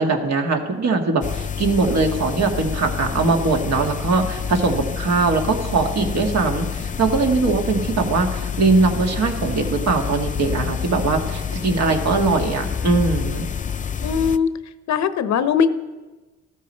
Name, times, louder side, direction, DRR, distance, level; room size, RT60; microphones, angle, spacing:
voice 1, 0.0-13.5, right 3 dB, 60° right, 3 dB, 1.9 m, -21 dB
sound 1, 1.2-14.4, left 7 dB, 25° left, 0.5 m, -28 dB
voice 2, 14.0-14.5 14.9-15.7, left 6 dB, 65° left, 12 dB, 0.8 m, -19 dB
13.5 x 13.0 x 4.4 m, 1.2 s
cardioid pair, 90°, 30 cm